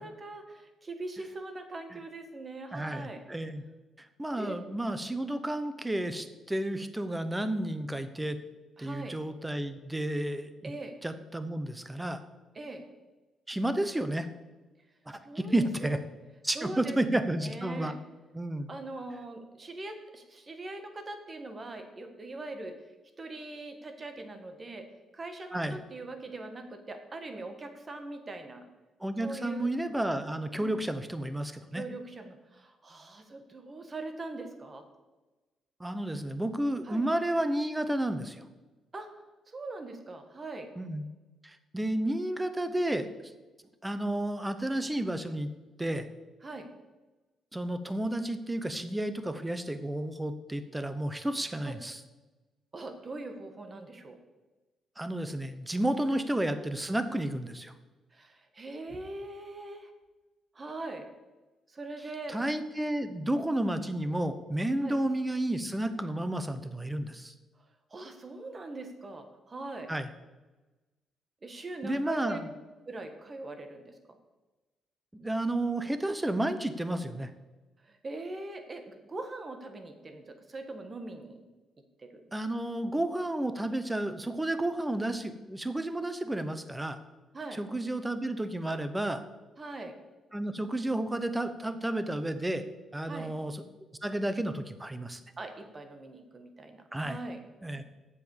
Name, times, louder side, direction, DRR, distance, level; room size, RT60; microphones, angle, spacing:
voice 1, 0.0-3.2 4.4-4.6 8.8-9.2 10.6-10.9 12.5-12.8 15.2-15.9 16.5-17.9 18.7-22.7 23.2-24.9 25.1-28.7 29.2-29.7 30.6-30.8 31.7-34.8 36.8-37.0 38.9-39.1 39.5-40.7 46.4-46.7 51.6-51.8 52.7-54.2 56.0-56.2 58.1-59.9 60.5-61.1 61.7-62.4 63.5-63.7 64.8-65.0 67.9-69.9 71.4-72.4 72.9-73.9 77.8-81.4 82.0-82.2 87.3-87.6 88.7-88.8 89.6-90.0 93.1-93.3 95.4-97.4, right 2 dB, 30° right, 6 dB, 1.6 m, -41 dB
voice 2, 2.7-3.6 4.0-8.4 8.8-10.7 11.0-12.2 13.5-14.3 15.1-16.0 16.4-17.9 18.3-18.7 25.5-25.8 29.0-31.8 35.8-38.4 40.8-41.0 41.4-43.1 43.8-45.5 45.8-46.1 47.5-52.0 55.0-57.7 62.3-67.3 69.9-70.1 71.8-72.4 75.1-77.3 82.3-87.0 87.5-89.2 90.3-92.6 92.9-93.6 94.0-95.2 96.9-97.2 97.6-97.8, right 1 dB, 10° right, 11 dB, 0.9 m, -31 dB
7.8 x 7.2 x 7.2 m, 1.2 s
cardioid pair, 90°, 0 cm